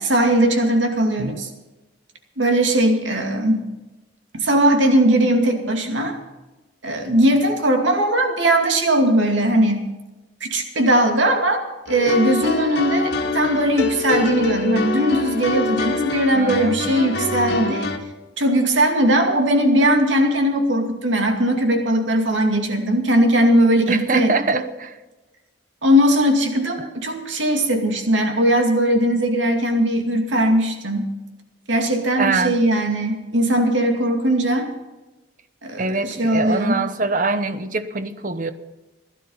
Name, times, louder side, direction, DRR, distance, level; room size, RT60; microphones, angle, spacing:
voice 1, 0.0-1.5 2.4-3.6 4.3-6.2 6.8-9.8 10.4-11.6 11.9-17.9 18.4-24.4 25.8-31.1 31.7-34.7 35.6-36.9, right 1 dB, 85° right, 4 dB, 2.5 m, -19 dB
sound 1, 11.9-18.0, left 3 dB, 60° left, 2.1 m, -25 dB
voice 2, 16.3-16.8 23.9-24.9 32.2-32.6 35.8-38.5, right 3 dB, 45° right, 11 dB, 0.9 m, -23 dB
16.5 x 12.0 x 5.6 m, 1.1 s
head